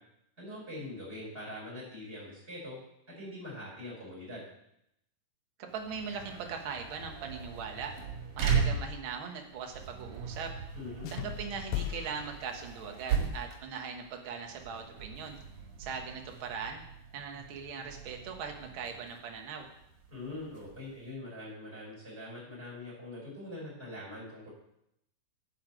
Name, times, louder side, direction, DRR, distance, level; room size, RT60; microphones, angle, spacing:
voice 1, 0.4-2.8 3.1-4.4 10.7-11.1 20.1-24.5, left 1 dB, 20° right, -6 dB, 5.6 m, -43 dB
voice 2, 5.7-7.9 8.4-10.5 11.1-15.4 15.8-16.8 17.1-19.7, right 6 dB, 50° right, 3 dB, 1.8 m, -40 dB
sound 1, 5.7-21.1, right 6 dB, 90° right, 3.3 m, -38 dB
sound 2, 11.0-13.2, left 13 dB, 80° left, 1.7 m, -39 dB
10.0 x 5.8 x 7.8 m, 0.79 s
omnidirectional pair, 3.5 m